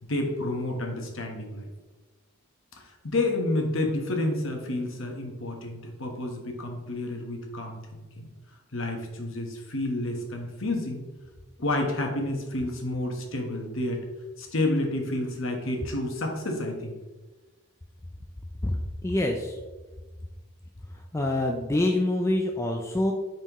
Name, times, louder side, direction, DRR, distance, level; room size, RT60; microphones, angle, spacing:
voice 1, 0.0-1.7 3.0-8.3 8.7-11.0 11.6-14.0 14.4-17.0, left 2 dB, 60° left, 1 dB, 1.3 m, -30 dB
voice 2, 19.0-19.6 21.1-23.1, left 1 dB, 10° left, 2 dB, 0.4 m, -25 dB
9.0 x 4.4 x 3.1 m, 1.2 s
head